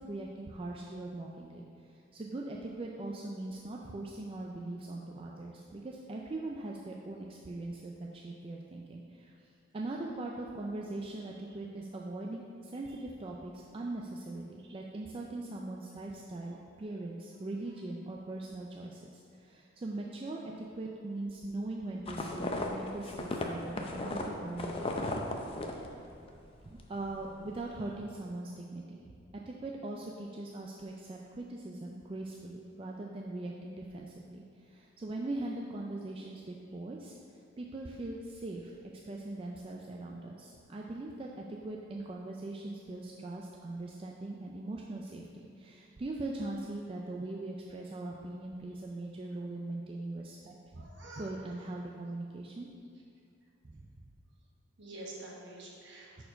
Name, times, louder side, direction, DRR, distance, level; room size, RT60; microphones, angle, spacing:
voice 1, 0.0-9.3 9.7-24.9 26.6-29.0 29.5-37.1 37.6-38.7 39.1-50.9 51.1-52.7 53.6-53.8 56.2-56.3, right 2 dB, 25° right, -2 dB, 0.3 m, -41 dB
sound 1, 22.1-26.4 26.7-27.2, left 2 dB, 25° left, 0.5 m, -36 dB
voice 2, 50.8-51.3 54.8-56.2, right 1 dB, 60° right, -3 dB, 1.4 m, -47 dB
6.7 x 4.4 x 5.1 m, 2.4 s
head